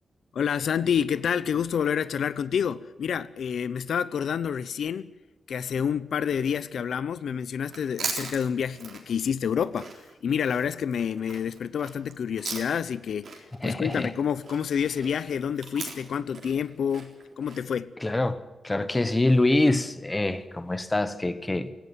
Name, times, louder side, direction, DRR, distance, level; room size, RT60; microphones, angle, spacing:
voice 1, 0.3-5.1 5.5-9.9 10.2-17.9, left 7 dB, 70° left, 0.7 m, -28 dB
Chewing mastication, 7.6-13.0 13.2-17.6, right 5 dB, 50° right, 3.7 m, -39 dB
voice 2, 13.6-14.1 18.0-18.4 18.6-21.7, left 2 dB, 15° left, 1.0 m, -25 dB
18.0 x 16.5 x 9.3 m
wide cardioid pair, 180°, 0 cm